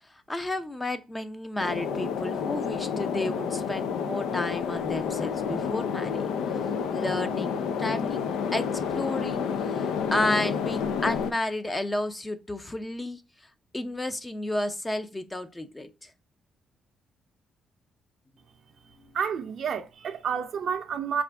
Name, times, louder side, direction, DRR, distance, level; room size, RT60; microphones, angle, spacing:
voice 1, 0.3-6.6 6.9-13.2 13.7-15.9, left 1 dB, 15° left, 0.5 m, -32 dB
sound 1, 1.6-11.3, left 6 dB, 85° left, 0.4 m, -29 dB
voice 2, 19.1-21.2, right 7 dB, 60° right, 0.5 m, -30 dB
4.6 x 2.5 x 3.3 m
cardioid pair, 90°, 0 cm